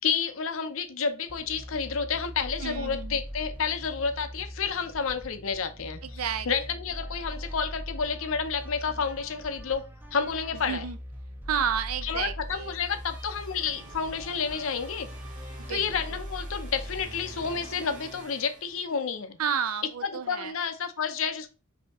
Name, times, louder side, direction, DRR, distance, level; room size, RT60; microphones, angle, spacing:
voice 1, 0.0-9.8 10.1-10.9 12.0-15.1 15.7-19.4 20.0-21.5, left 6 dB, 65° left, 0.6 m, -30 dB
sound 1, 1.3-18.6, equal, 10° right, 0.5 m, -41 dB
voice 2, 2.6-3.2 6.0-6.5 10.7-11.0 11.5-12.7 15.6-15.9 19.4-20.5, right 7 dB, 85° right, 0.5 m, -31 dB
sound 2, 12.4-19.3, right 2 dB, 40° right, 1.3 m, -48 dB
5.0 x 2.8 x 3.5 m
head